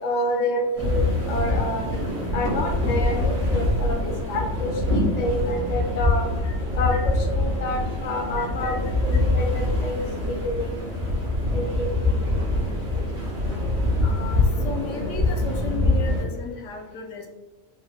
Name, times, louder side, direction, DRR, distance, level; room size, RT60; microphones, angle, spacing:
voice 1, 0.0-1.9 2.3-6.3 6.7-10.8 11.5-12.4, left 1 dB, 45° left, 2 dB, 0.6 m, -28 dB
sound 1, 0.8-16.2, left 2 dB, 85° right, 1.7 m, -24 dB
voice 2, 8.4-8.8 14.0-17.3, left 5 dB, 70° left, 2 dB, 0.9 m, -35 dB
4.6 x 2.1 x 3.5 m, 1.2 s
omnidirectional pair, 1.4 m